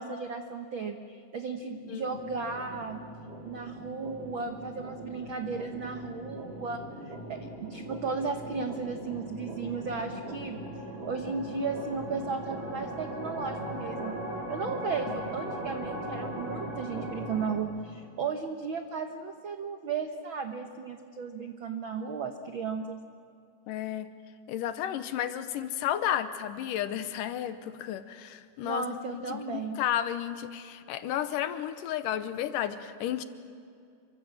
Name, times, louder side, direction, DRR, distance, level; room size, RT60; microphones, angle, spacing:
voice 1, 0.0-3.0 3.4-10.6 11.1-14.2 14.5-23.0 28.6-29.8, right 5 dB, 75° right, 6 dB, 1.1 m, -35 dB
sound 1, 2.0-17.6, right 1 dB, 40° right, 4.8 m, -39 dB
voice 2, 23.7-24.1 24.5-33.2, left 11 dB, 80° left, 11 dB, 2.5 m, -32 dB
28.0 x 25.0 x 7.5 m, 2.4 s
omnidirectional pair, 3.9 m